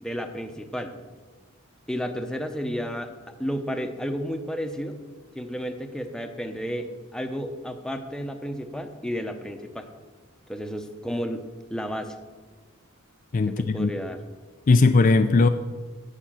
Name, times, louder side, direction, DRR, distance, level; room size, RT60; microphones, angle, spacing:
voice 1, 0.0-0.9 1.9-3.1 3.4-5.0 5.3-6.9 7.1-9.9 10.5-11.4 11.7-12.2 13.6-14.2, equal, 5° left, 6 dB, 0.8 m, -32 dB
voice 2, 13.3-13.9 14.7-15.5, left 3 dB, 40° left, 8 dB, 0.4 m, -18 dB
10.0 x 7.5 x 7.5 m, 1.4 s
head